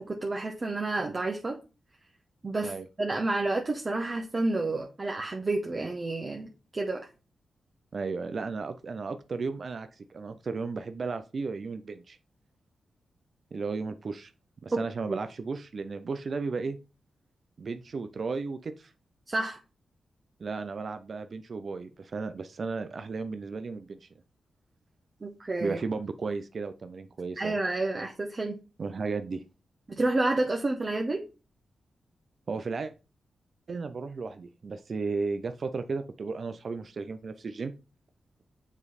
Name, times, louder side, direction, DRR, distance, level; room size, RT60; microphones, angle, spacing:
voice 1, 0.1-1.6 2.4-2.7 3.0-7.1 14.7-14.8 15.1-15.2 19.3-19.6 25.2-25.8 27.4-28.6 29.9-31.2, right 2 dB, 40° right, 2 dB, 1.0 m, -29 dB
voice 2, 7.9-12.2 13.5-14.3 14.6-16.8 17.6-18.9 20.4-24.1 25.6-27.6 28.8-29.4 32.5-32.9 33.7-37.7, right 4 dB, 60° right, 9 dB, 0.5 m, -34 dB
7.2 x 3.2 x 4.1 m, 0.31 s
supercardioid pair, 45°, 0 cm